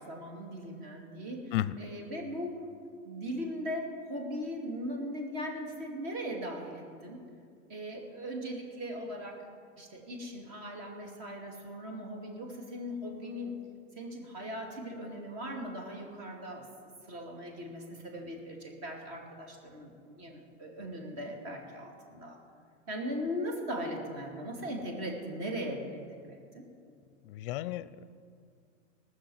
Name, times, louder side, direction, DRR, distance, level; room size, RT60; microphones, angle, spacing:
voice 1, 0.0-2.6 3.0-7.3 7.7-9.5 9.8-13.6 14.0-16.7 17.1-22.4 22.9-26.7, equal, 40° right, 1 dB, 2.6 m, -39 dB
voice 2, 27.3-28.1, left 14 dB, 45° left, 17 dB, 0.5 m, -33 dB
19.0 x 6.5 x 7.9 m, 2.2 s
supercardioid pair, 165°, 37 cm